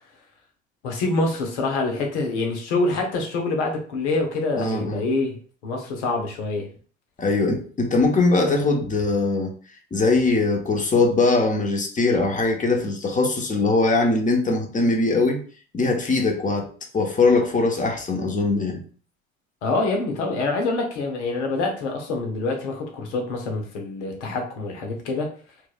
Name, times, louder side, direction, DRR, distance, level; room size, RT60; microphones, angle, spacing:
voice 1, 0.8-5.4 5.6-6.7 19.6-25.3, left 3 dB, 75° left, 1.0 m, -26 dB
voice 2, 4.6-5.1 7.2-9.5 9.9-15.4 15.7-18.8, left 3 dB, 20° left, 0.9 m, -21 dB
4.4 x 2.5 x 2.3 m
hypercardioid pair, 65°, 35 cm